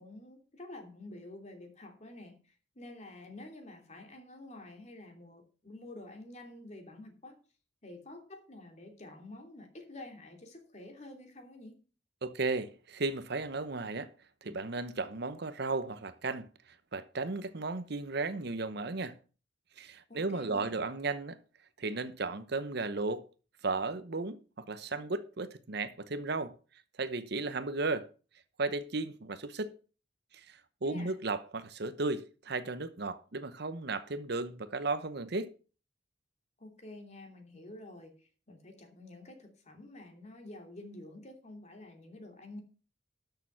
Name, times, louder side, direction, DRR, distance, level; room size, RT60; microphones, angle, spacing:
voice 1, 0.0-7.3 7.8-11.8 20.1-20.8 30.8-31.2 36.6-42.6, left 2 dB, 40° left, 2.8 m, -49 dB
voice 2, 12.2-14.1 14.4-16.5 16.9-19.2 19.8-21.4 21.8-23.2 23.6-26.5 27.0-28.1 28.6-29.8 30.3-35.5, right 3 dB, 60° right, 0.9 m, -35 dB
12.5 x 6.8 x 5.7 m
head